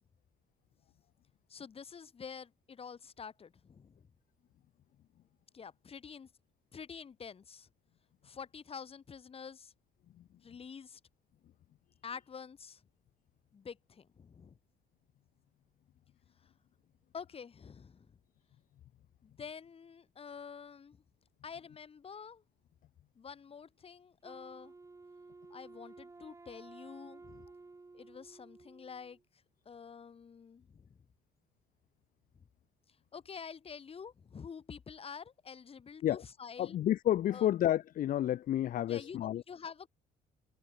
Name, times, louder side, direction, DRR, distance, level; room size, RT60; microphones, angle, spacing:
voice 1, 1.5-4.1 5.5-6.3 6.7-7.7 8.2-9.7 10.4-11.0 12.0-12.8 13.5-14.6 16.4-16.5 17.1-18.2 19.2-21.0 21.4-22.4 23.2-24.7 25.5-27.5 27.9-29.2 29.7-31.0 32.3-32.4 33.1-36.8 37.3-37.5 38.9-39.2 39.5-39.9, left 6 dB, 35° left, 3.5 m, -48 dB
Wind instrument woodwind instrument, 24.2-29.2, right 3 dB, 20° right, 3.0 m, -54 dB
voice 2, 36.6-39.4, left 12 dB, 55° left, 0.8 m, -30 dB
cardioid pair, 110°, 17 cm